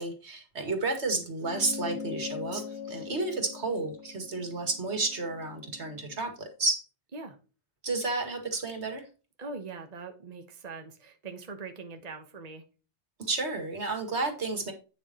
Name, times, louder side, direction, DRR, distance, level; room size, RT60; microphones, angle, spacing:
voice 1, 0.0-6.8 7.8-9.0 13.2-14.7, right 3 dB, 75° right, 2.3 m, -31 dB
sound 1, 1.4-6.2, left 6 dB, 80° left, 1.8 m, -42 dB
voice 2, 9.4-12.6, right 4 dB, 35° right, 1.2 m, -42 dB
9.0 x 7.0 x 2.9 m
omnidirectional pair, 1.1 m